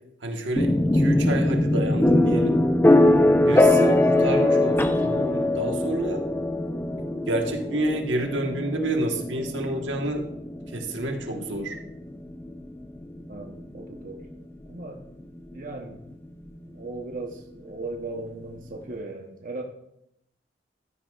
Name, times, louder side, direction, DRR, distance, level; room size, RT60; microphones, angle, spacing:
voice 1, 0.2-2.6 3.5-6.2 7.3-10.2 10.7-11.8, right 1 dB, 85° right, 3 dB, 1.3 m, -29 dB
sound 1, 0.6-14.3, left 1 dB, 10° left, 0.5 m, -22 dB
voice 2, 13.3-14.3 14.7-15.0 15.5-16.0 16.7-19.6, right 2 dB, 45° right, 2 dB, 0.9 m, -37 dB
13.0 x 9.6 x 2.4 m, 0.78 s
head